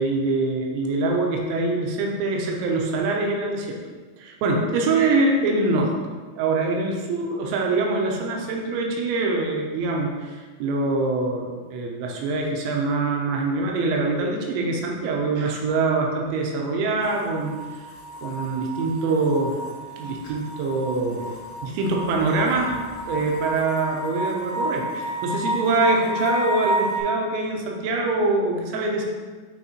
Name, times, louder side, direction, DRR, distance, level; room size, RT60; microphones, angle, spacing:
voice 1, 0.0-3.8 4.2-5.9 6.3-17.6 18.2-19.6 20.0-21.2 21.6-22.8 23.1-29.0, right 3 dB, 85° right, 0 dB, 2.9 m, -24 dB
sound 1, 17.0-27.0, equal, 70° left, 3.2 m, -30 dB
8.8 x 3.6 x 2.9 m, 1.4 s
omnidirectional pair, 5.5 m